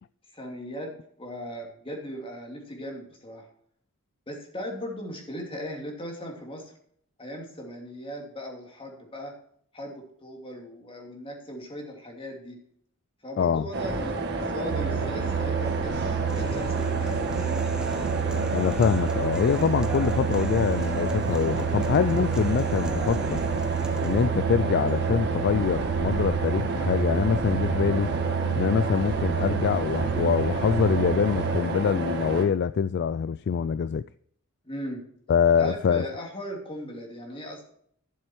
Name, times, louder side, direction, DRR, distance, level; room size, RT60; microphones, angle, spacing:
voice 1, 0.3-3.5 4.3-6.7 7.2-9.3 9.7-12.6 13.2-17.7 34.6-35.0 35.6-37.7, equal, 25° left, 2.8 m, -38 dB
voice 2, 13.4-13.7 18.5-23.4 24.0-28.1 28.6-34.0 35.3-36.0, left 7 dB, 50° left, 0.3 m, -24 dB
sound 1, 13.7-32.5, right 2 dB, 50° right, 1.8 m, -30 dB
sound 2, 14.7-31.6, right 9 dB, 90° right, 0.3 m, -30 dB
Human voice, 16.3-24.3, right 1 dB, 5° right, 0.9 m, -44 dB
12.0 x 7.6 x 4.5 m
head